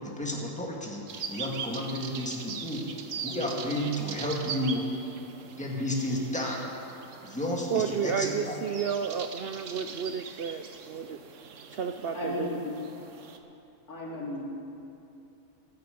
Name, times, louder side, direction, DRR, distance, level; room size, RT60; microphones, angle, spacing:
voice 1, 0.0-2.9 3.2-4.8 5.6-6.6 7.2-8.6, left 1 dB, 5° left, -2 dB, 1.8 m, -32 dB
sound 1, 1.1-13.4, right 6 dB, 55° right, 1.2 m, -41 dB
voice 2, 7.7-11.2 11.7-12.5, right 7 dB, 85° right, 7 dB, 0.5 m, -31 dB
voice 3, 12.1-12.7 13.9-14.4, left 1 dB, 70° left, -4 dB, 3.1 m, -34 dB
15.0 x 14.0 x 5.2 m, 2.7 s
omnidirectional pair, 1.6 m